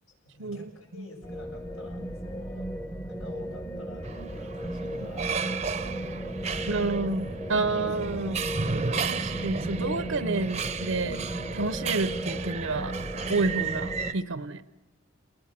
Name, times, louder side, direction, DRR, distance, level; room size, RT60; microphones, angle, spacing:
voice 1, 0.2-2.7 3.1-5.7 6.1-6.7, left 1 dB, 75° left, 0 dB, 6.7 m, -48 dB
sound 1, 1.2-14.1, right 1 dB, 15° left, 1.1 m, -35 dB
sound 2, 4.0-14.1, right 5 dB, 30° right, 0.7 m, -34 dB
voice 2, 6.7-8.4 9.1-11.2 11.5-12.9 13.3-14.6, right 3 dB, 70° right, 13 dB, 0.7 m, -29 dB
29.5 x 20.0 x 7.4 m, 1.1 s
head